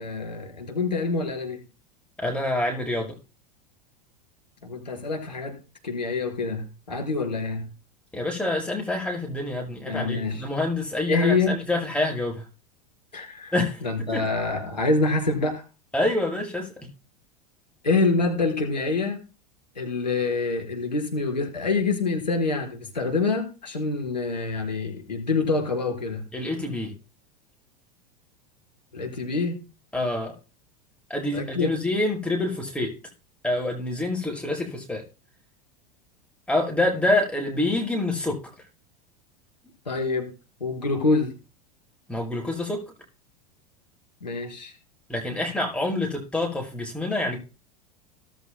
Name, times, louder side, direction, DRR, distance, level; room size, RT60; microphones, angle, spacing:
voice 1, 0.0-1.6 4.6-5.6 5.8-7.7 9.9-10.4 11.1-11.6 13.1-13.5 13.8-15.6 17.8-19.2 19.8-26.3 28.9-29.6 31.3-31.7 39.8-40.3 40.6-41.3 44.2-44.7, left 3 dB, 85° left, 1 dB, 4.7 m, -26 dB
voice 2, 2.2-3.1 8.1-12.4 13.5-13.8 14.1-14.3 15.9-16.7 26.3-26.9 29.9-30.3 31.1-32.9 33.4-35.0 36.5-38.4 42.1-42.8 45.1-47.4, left 2 dB, 5° left, 0 dB, 7.3 m, -26 dB
19.0 x 14.0 x 2.2 m, 0.33 s
figure-of-eight pair, 85°, 21 cm